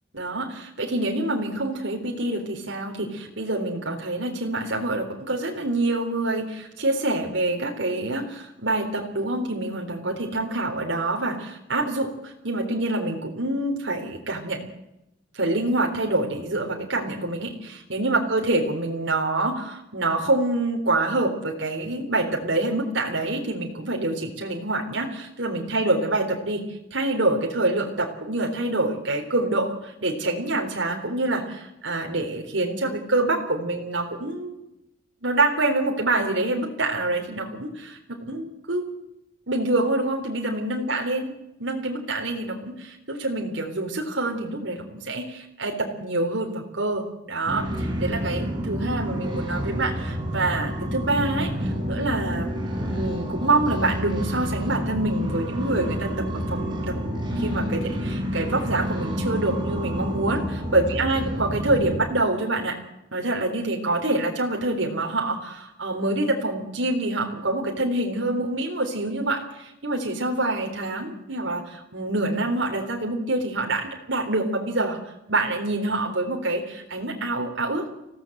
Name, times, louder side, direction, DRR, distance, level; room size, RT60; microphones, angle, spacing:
voice 1, 0.1-14.7 15.3-26.6 26.9-34.6 35.2-38.8 39.5-41.3 41.6-52.6 52.9-56.9 57.4-62.8 63.1-75.0 75.3-77.8, right 2 dB, 85° right, 1 dB, 3.8 m, -26 dB
sound 1, 47.5-62.0, equal, 25° right, 6.5 m, -29 dB
25.5 x 17.0 x 8.0 m, 0.88 s
head